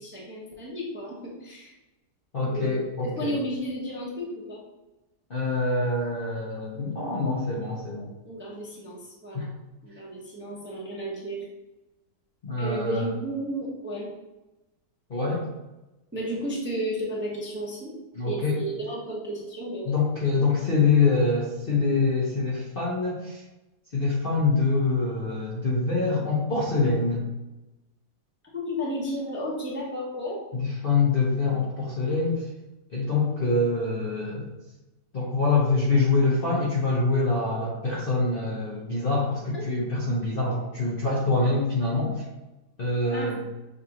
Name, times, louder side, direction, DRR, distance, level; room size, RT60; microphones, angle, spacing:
voice 1, 0.0-1.7 2.4-2.8 3.2-4.6 8.2-9.5 9.8-11.4 12.6-14.1 16.1-17.9 18.3-19.9 28.5-30.4 39.5-39.6 43.1-43.3, equal, 10° right, -5 dB, 0.7 m, -33 dB
voice 2, 2.3-3.4 5.3-8.1 9.3-9.5 12.4-13.1 15.1-15.4 18.1-18.6 19.9-23.4 23.9-27.2 30.5-32.4 32.9-34.5 35.1-42.1 42.8-43.4, left 3 dB, 45° left, -6 dB, 0.8 m, -25 dB
6.5 x 2.6 x 2.9 m, 1.0 s
omnidirectional pair, 1.8 m